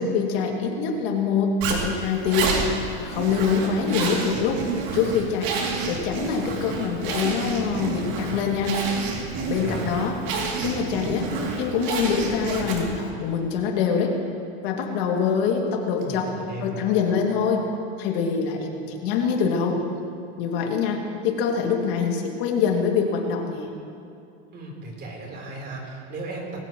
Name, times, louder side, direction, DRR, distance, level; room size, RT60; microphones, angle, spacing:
voice 1, 0.0-2.6 3.0-4.6 4.9-5.6 5.9-8.8 9.5-10.2 10.6-11.3 11.6-14.2 14.6-16.3 16.6-17.7 18.0-19.8 20.4-23.7, left 6 dB, 65° left, 1 dB, 2.5 m, -24 dB
Zipper (clothing), 1.6-13.1, right 4 dB, 60° right, 2.9 m, -29 dB
voice 2, 9.3-9.9 16.0-16.8 24.5-26.5, right 2 dB, 30° right, -1 dB, 3.8 m, -36 dB
20.5 x 17.0 x 3.1 m, 2.5 s
supercardioid pair, 145°, 33 cm